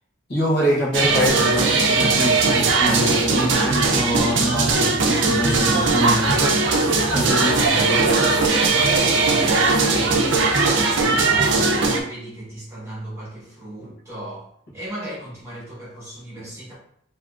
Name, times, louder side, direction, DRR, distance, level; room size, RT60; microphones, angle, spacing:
voice 1, 0.3-7.6 7.9-8.1, equal, 55° left, -6 dB, 1.1 m, -25 dB
sound 1, 0.9-12.0, right 3 dB, 65° right, 0.5 m, -19 dB
voice 2, 7.4-14.5 14.7-16.7, right 1 dB, 15° right, -7 dB, 1.2 m, -34 dB
3.5 x 2.8 x 2.4 m, 0.69 s
head